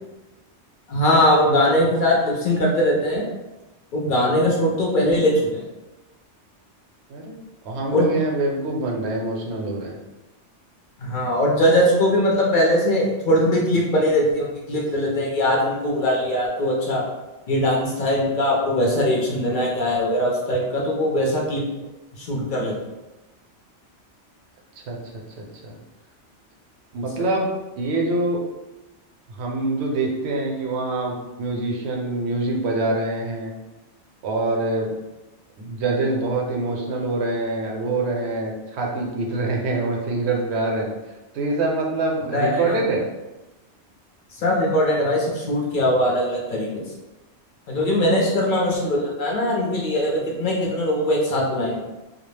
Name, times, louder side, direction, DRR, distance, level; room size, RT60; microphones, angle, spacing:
voice 1, 0.9-3.3 3.9-5.6 7.9-8.1 11.0-17.0 17.5-21.6 22.2-22.8 42.3-42.8 44.4-46.8 47.7-51.8, left 1 dB, 55° left, -2 dB, 0.6 m, -21 dB
voice 2, 7.6-10.0 24.8-25.0 25.4-25.7 26.9-27.5 27.8-28.4 29.4-33.5 34.2-34.9 35.6-40.9 41.3-43.1 48.0-48.3, right 2 dB, 70° right, -1 dB, 0.8 m, -25 dB
2.2 x 2.0 x 3.1 m, 1.1 s
omnidirectional pair, 1.2 m